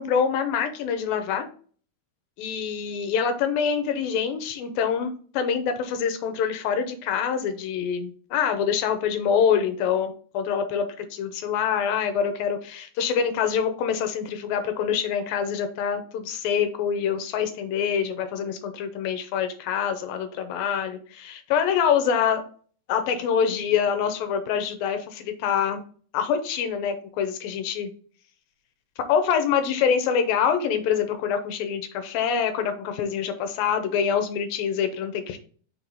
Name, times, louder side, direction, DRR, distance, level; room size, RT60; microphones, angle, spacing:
voice 1, 0.0-1.5 2.4-22.4 22.9-25.8 26.1-27.9 29.1-35.4, left 7 dB, 75° left, 7 dB, 2.5 m, -25 dB
6.2 x 4.7 x 4.0 m, 0.44 s
omnidirectional pair, 4.4 m